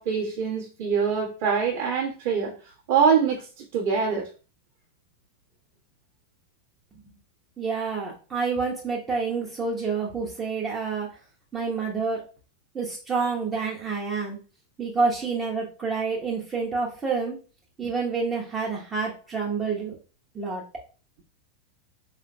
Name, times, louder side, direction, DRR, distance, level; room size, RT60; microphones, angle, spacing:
voice 1, 0.0-2.5 2.9-4.3, right 6 dB, 55° right, 1.4 m, -24 dB
voice 2, 7.6-11.1 11.5-12.2 12.7-14.4 14.8-17.4 17.8-20.0 20.3-20.6, right 4 dB, 20° right, 1.0 m, -28 dB
4.9 x 3.6 x 2.2 m
figure-of-eight pair, 90°, 0 cm